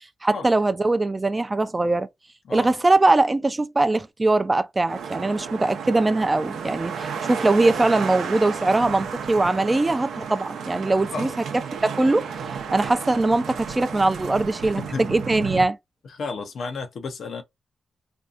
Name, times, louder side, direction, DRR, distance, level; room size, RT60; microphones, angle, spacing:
voice 1, 0.2-2.1 2.5-11.3 11.8-12.3 12.7-15.8, right 2 dB, 25° right, 0.4 m, -21 dB
sound 1, 4.9-15.7, right 6 dB, 85° right, 0.5 m, -32 dB
voice 2, 14.6-15.0 16.0-17.4, left 4 dB, 70° left, 0.6 m, -32 dB
2.6 x 2.3 x 2.4 m
cardioid pair, 65°, 0 cm